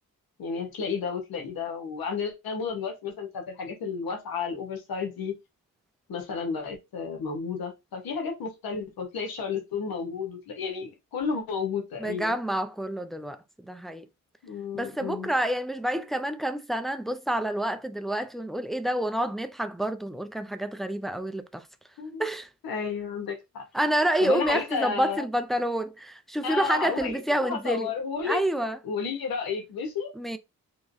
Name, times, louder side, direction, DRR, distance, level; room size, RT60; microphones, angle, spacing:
voice 1, 0.4-5.3 6.1-12.4 14.4-15.3 22.0-22.2 22.6-23.7 24.2-25.2 26.4-28.4 28.8-30.1, left 5 dB, 85° left, 1.3 m, -32 dB
voice 2, 12.0-14.1 14.7-21.7 22.2-22.5 23.7-27.9 28.2-28.8 30.2-30.4, right 1 dB, ahead, 0.4 m, -28 dB
3.6 x 3.0 x 2.6 m
cardioid pair, 60°, 35 cm